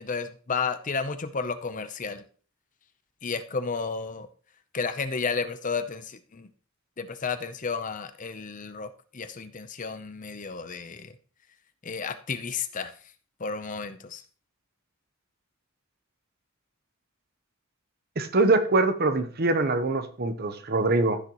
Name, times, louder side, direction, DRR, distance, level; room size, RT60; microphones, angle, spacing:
voice 1, 0.0-2.2 3.2-4.3 4.7-6.5 7.0-11.1 11.8-12.9 13.4-14.2, left 5 dB, 40° left, 11 dB, 0.7 m, -32 dB
voice 2, 18.2-21.2, right 2 dB, 50° right, 10 dB, 0.9 m, -23 dB
15.0 x 6.7 x 3.0 m, 0.40 s
head